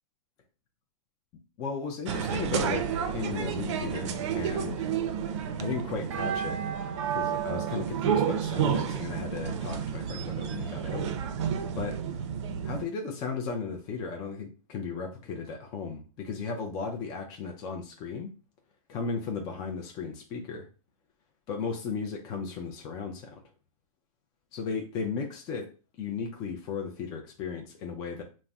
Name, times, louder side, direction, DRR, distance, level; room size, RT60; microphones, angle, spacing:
voice 1, 1.6-2.8 3.1-4.9 5.6-6.6 7.1-11.1 11.8-11.9 12.6-18.3 18.9-20.7 21.5-23.4 24.5-25.7 26.0-28.2, left 5 dB, 20° left, 2 dB, 0.3 m, -35 dB
sound 1, 2.0-12.8, right 8 dB, 55° right, 0.4 m, -30 dB
2.5 x 2.0 x 3.3 m, 0.35 s
hypercardioid pair, 135°, 19 cm